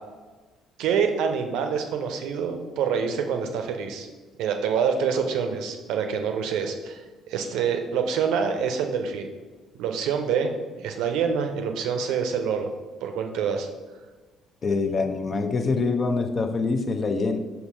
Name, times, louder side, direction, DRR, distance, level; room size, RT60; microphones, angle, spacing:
voice 1, 0.8-4.1 4.4-7.0 7.3-9.3 9.8-10.5 10.8-12.7 13.0-13.7, right 6 dB, 60° right, 6 dB, 0.6 m, -26 dB
voice 2, 14.6-17.4, left 4 dB, 40° left, 6 dB, 0.6 m, -25 dB
5.8 x 3.8 x 5.4 m, 1.3 s
figure-of-eight pair, 45°, 0 cm